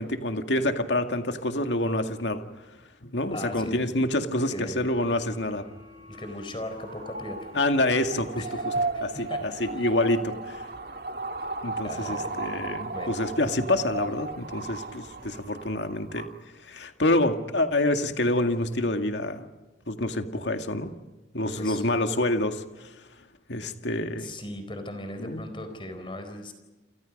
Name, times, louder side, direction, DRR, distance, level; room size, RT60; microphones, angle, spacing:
voice 1, 0.0-2.4 3.0-5.7 7.5-8.7 9.0-10.6 11.6-16.3 16.6-19.5 19.9-20.9 21.3-23.0 23.5-24.3 25.2-25.4, left 1 dB, 80° left, 6 dB, 2.0 m, -27 dB
voice 2, 3.3-3.8 4.5-4.8 6.1-7.5 8.4-9.0 9.3-9.4 9.7-9.9 11.8-12.3 12.9-13.1 21.6-21.8 24.2-26.5, left 1 dB, 25° left, 7 dB, 4.2 m, -38 dB
sound 1, 4.8-9.6, left 2 dB, 25° right, 7.6 m, -50 dB
sound 2, 6.6-16.4, right 3 dB, 55° right, 1.8 m, -35 dB
30.0 x 28.0 x 5.3 m, 1.1 s
head